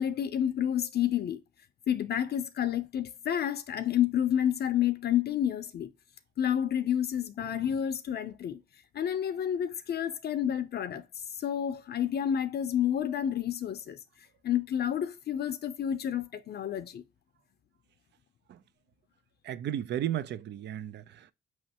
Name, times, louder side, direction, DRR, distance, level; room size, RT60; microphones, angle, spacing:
voice 1, 0.0-1.4 1.9-5.9 6.4-8.6 8.9-11.0 11.3-14.0 14.4-17.0, left 10 dB, 55° left, 0.5 m, -29 dB
voice 2, 19.4-21.3, right 11 dB, 60° right, 0.5 m, -34 dB
5.6 x 3.1 x 2.8 m
cardioid pair, 90°, 20 cm